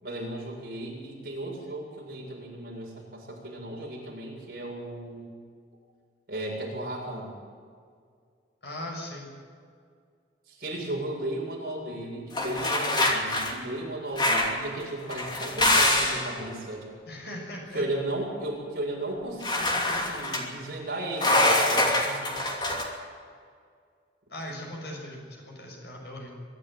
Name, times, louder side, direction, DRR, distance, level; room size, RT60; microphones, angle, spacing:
voice 1, 0.0-5.3 6.3-7.3 10.5-16.9 17.7-21.9, right 1 dB, 50° right, -3 dB, 7.3 m, -35 dB
voice 2, 8.6-9.3 17.1-17.8 22.0-22.4 24.3-26.3, left 1 dB, 65° left, 0 dB, 6.6 m, -39 dB
sound 1, 12.3-13.5 14.2-14.6 15.1-16.3 19.4-20.4 21.2-22.8, left 1 dB, 25° left, 2.8 m, -24 dB
23.5 x 12.0 x 9.0 m, 2.1 s
head